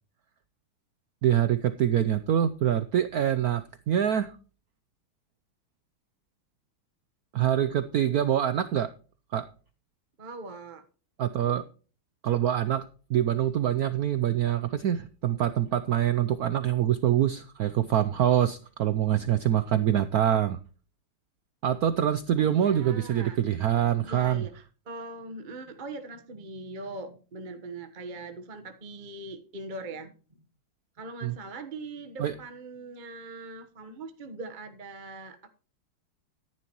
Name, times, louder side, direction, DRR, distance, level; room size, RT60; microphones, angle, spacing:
voice 1, 1.2-4.3 7.3-8.9 9.3-9.5 11.2-11.6 12.2-20.6 21.6-24.5 31.2-31.3 32.2-32.3, right 10 dB, 75° right, 13 dB, 0.8 m, -25 dB
voice 2, 10.2-10.8 22.4-23.4 24.0-30.1 31.0-35.6, right 2 dB, 30° right, 7 dB, 1.0 m, -41 dB
13.0 x 11.0 x 3.0 m, 0.37 s
omnidirectional pair, 2.3 m